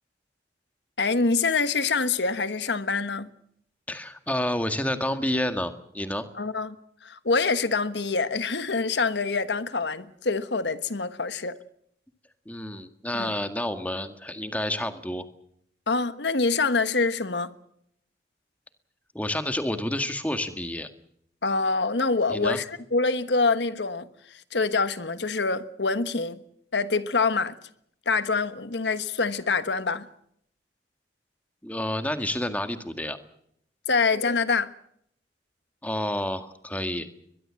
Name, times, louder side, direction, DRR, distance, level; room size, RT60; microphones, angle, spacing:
voice 1, 1.0-3.3 6.3-6.7 7.0-11.5 13.1-13.3 15.9-17.5 21.4-26.4 26.7-27.5 28.1-30.1 33.9-34.7, left 4 dB, 80° left, 1.3 m, -25 dB
voice 2, 3.9-6.2 12.5-15.2 19.1-20.9 22.3-22.6 31.6-33.2 35.8-37.1, left 1 dB, 10° left, 1.8 m, -29 dB
22.5 x 22.0 x 7.6 m
head